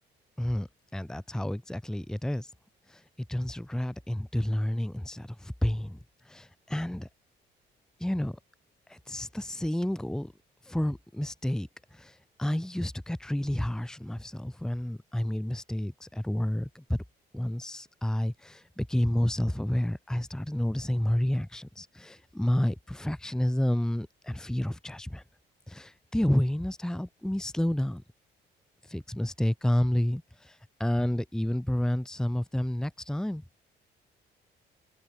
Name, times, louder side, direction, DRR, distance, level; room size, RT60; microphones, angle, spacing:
voice 1, 0.9-2.5 2.9-3.0 3.3-6.0 6.2-7.1 8.0-8.4 8.9-10.3 10.6-17.0 17.3-25.2 25.7-28.0 28.9-33.4, left 1 dB, 5° left, 1.0 m, -30 dB
cardioid pair, 90°, 20 cm